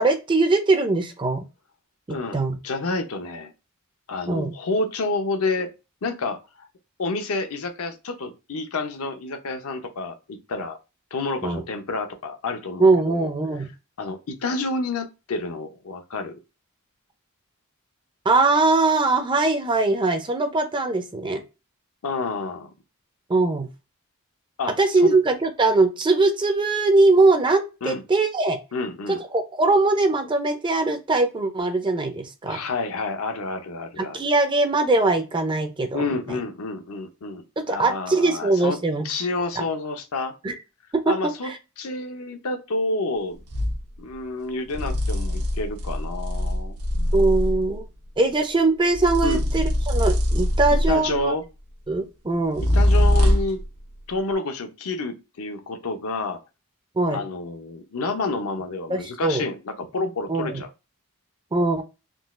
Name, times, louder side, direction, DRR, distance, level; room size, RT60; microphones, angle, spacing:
voice 1, 0.0-1.4 2.1-2.6 4.3-4.5 11.4-11.6 12.8-13.7 18.3-21.4 23.3-23.7 24.8-28.6 29.1-32.6 34.0-36.0 37.7-39.0 39.6-39.7 40.4-40.5 41.4-41.6 47.1-47.8 48.2-51.3 51.9-52.7 57.0-57.2 58.9-59.4 60.3-60.6 61.5-61.8, right 3 dB, 20° right, 7 dB, 0.4 m, -21 dB
voice 2, 2.6-3.5 4.1-5.7 6.0-6.7 7.0-10.8 11.1-13.3 14.0-16.4 22.0-22.7 24.6-24.8 25.0-25.2 27.8-28.0 28.7-29.2 32.5-34.2 35.9-38.8 39.0-40.4 41.1-41.5 41.8-43.4 44.0-46.8 49.2-49.4 50.9-51.4 52.7-53.6 54.1-56.4 57.1-60.7, left 3 dB, 70° left, 6 dB, 0.6 m, -29 dB
sound 1, 43.5-43.8 44.7-47.7 48.9-51.2 52.5-53.6, left 1 dB, 75° right, 0.7 m, -22 dB
3.8 x 2.3 x 2.4 m, 0.28 s
head